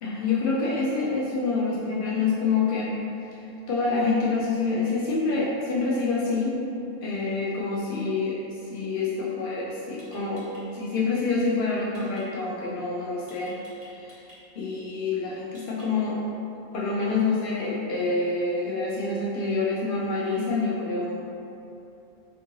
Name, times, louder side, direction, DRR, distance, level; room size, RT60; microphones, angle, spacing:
voice 1, 0.0-2.9 3.3-3.4 3.7-6.6 7.0-8.4 8.7-10.5 10.7-13.6 14.0-14.1 14.6-16.2 16.7-21.1, left 3 dB, 85° left, -5 dB, 0.4 m, -27 dB
sound 1, 10.0-10.6 11.9-12.2 13.3-14.4 15.5-16.1, equal, 35° right, 1.0 m, -52 dB
4.5 x 2.7 x 2.6 m, 2.9 s
omnidirectional pair, 1.5 m